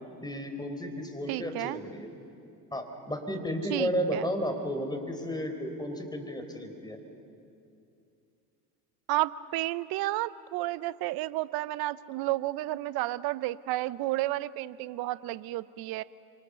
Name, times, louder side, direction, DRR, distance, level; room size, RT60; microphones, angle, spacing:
voice 1, 0.2-2.1 2.7-7.0, equal, 10° left, 5 dB, 4.3 m, -33 dB
voice 2, 1.3-1.8 3.7-4.2 9.1-16.0, right 17 dB, 50° right, 17 dB, 0.8 m, -31 dB
26.0 x 25.0 x 7.0 m, 2.5 s
hypercardioid pair, 70°, 46 cm